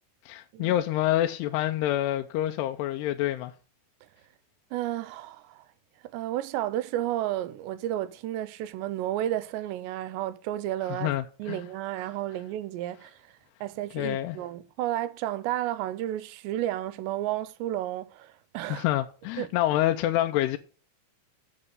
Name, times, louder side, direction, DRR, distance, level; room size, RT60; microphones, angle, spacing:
voice 1, 0.3-3.5 10.9-11.6 13.9-14.4 18.7-20.6, left 13 dB, 80° left, 2.6 m, -27 dB
voice 2, 4.7-5.7 6.0-11.1 11.4-13.3 13.6-18.9 19.4-19.5, right 13 dB, 80° right, 2.8 m, -32 dB
7.7 x 7.1 x 7.9 m
omnidirectional pair, 5.1 m